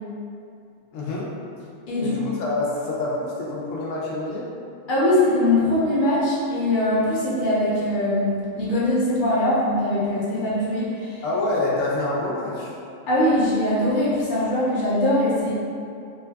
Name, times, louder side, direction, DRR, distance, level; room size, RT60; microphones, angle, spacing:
voice 1, 0.9-1.3 2.0-4.5 11.2-12.7, left 2 dB, 75° left, -5 dB, 0.9 m, -26 dB
voice 2, 1.9-2.2 4.9-11.2 13.1-15.5, left 1 dB, 50° left, -8 dB, 0.7 m, -21 dB
2.6 x 2.2 x 3.3 m, 2.5 s
omnidirectional pair, 1.4 m